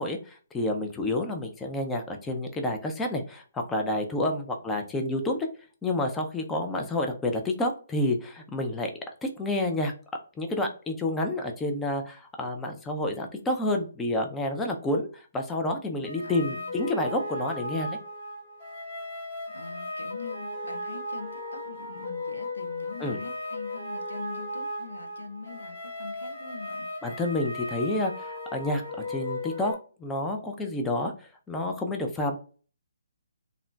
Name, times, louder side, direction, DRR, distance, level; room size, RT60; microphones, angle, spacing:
voice 1, 0.0-5.4 5.8-8.9 9.2-9.9 10.4-18.0 23.0-23.2 27.0-28.8 29.1-31.1 31.5-32.4, left 1 dB, 10° left, 0.4 m, -29 dB
sound 1, 16.0-29.7, left 1 dB, 40° left, 1.2 m, -36 dB
voice 2, 16.2-16.7 19.5-26.9, left 4 dB, 85° left, 0.6 m, -43 dB
3.6 x 2.1 x 2.3 m
hypercardioid pair, 145°, 0 cm